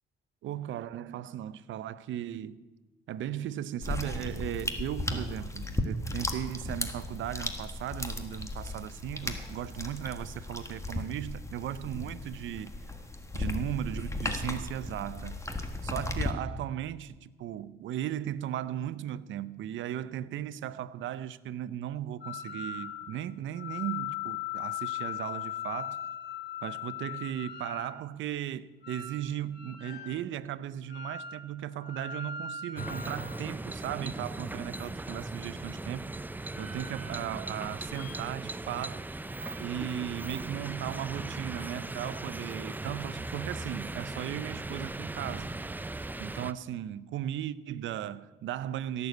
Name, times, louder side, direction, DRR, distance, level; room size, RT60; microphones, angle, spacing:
voice 1, 0.4-2.6 3.1-12.7 13.3-15.4 15.8-26.0 26.6-36.1 36.6-39.0 39.6-45.5 46.2-49.1, right 11 dB, 75° right, 0.6 m, -37 dB
sound 1, 3.8-16.3, left 2 dB, 15° left, 1.4 m, -36 dB
sound 2, 22.2-23.1 23.5-27.9 28.8-30.2 30.9-31.5 31.8-34.0 34.6-35.5 36.4-37.4 37.7-38.1, left 8 dB, 65° left, 3.0 m, -40 dB
sound 3, 32.8-46.5, right 2 dB, 10° right, 0.4 m, -38 dB
16.5 x 7.0 x 8.2 m
cardioid pair, 90°, 20 cm